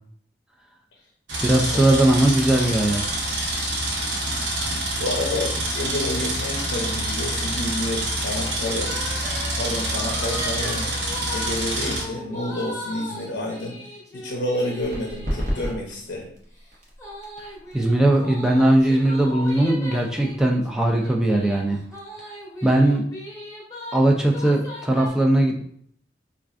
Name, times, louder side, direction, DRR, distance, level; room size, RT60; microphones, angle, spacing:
sound 1, 1.3-12.0, right 1 dB, 80° right, 0.9 m, -27 dB
voice 1, 1.4-3.0 17.7-21.8 22.6-23.1 23.9-25.6, right 1 dB, 5° right, 0 dB, 0.3 m, -19 dB
voice 2, 4.3-8.9 9.6-10.9 11.3-13.8 14.1-16.3, left 1 dB, 70° left, 0 dB, 0.6 m, -29 dB
sound 2, 8.9-15.7 17.0-24.0 24.3-25.1, equal, 15° left, 0.8 m, -38 dB
sound 3, 14.8-22.1, equal, 45° right, 0.8 m, -35 dB
4.4 x 2.4 x 2.4 m, 0.65 s
head